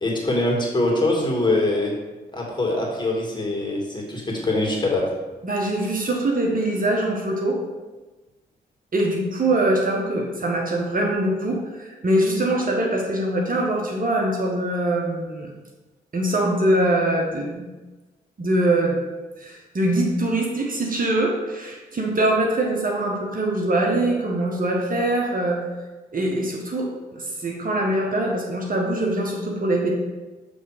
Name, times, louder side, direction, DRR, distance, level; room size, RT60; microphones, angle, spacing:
voice 1, 0.0-1.9 2.3-5.1, left 2 dB, 20° left, -2 dB, 2.3 m, -23 dB
voice 2, 5.4-7.6 8.9-15.5 16.1-17.7 18.4-19.0 19.4-25.6 26.1-29.9, right 1 dB, 45° right, 0 dB, 1.3 m, -23 dB
7.1 x 3.5 x 4.9 m, 1.2 s
supercardioid pair, 45°, 20 cm